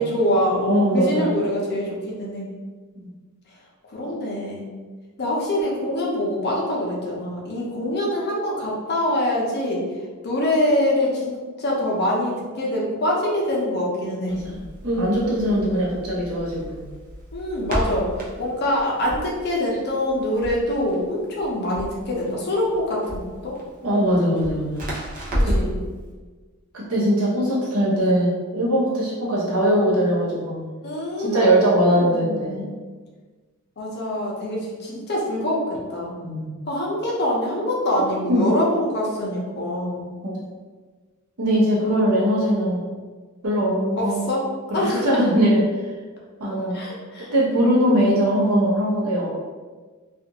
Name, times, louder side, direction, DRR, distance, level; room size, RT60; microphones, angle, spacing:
voice 1, 0.0-2.5 3.9-4.7 5.2-9.8 10.2-14.4 17.3-23.6 25.3-25.8 30.8-32.7 33.8-36.2 36.7-40.1 44.0-44.5 44.7-45.2 46.7-47.3, left 1 dB, 50° left, -3 dB, 0.7 m, -24 dB
voice 2, 0.7-1.3 2.9-3.1 14.3-16.8 23.8-24.9 25.4-25.6 26.7-30.7 31.2-32.6 36.2-36.5 38.3-38.4 40.2-40.4 41.4-42.9 43.4-44.3 44.9-45.6 46.4-46.9 47.2-49.3, equal, 75° right, -5 dB, 0.9 m, -21 dB
Crackle, 14.3-25.8, equal, 40° right, 0.6 m, -31 dB
2.4 x 2.4 x 2.8 m, 1.4 s
head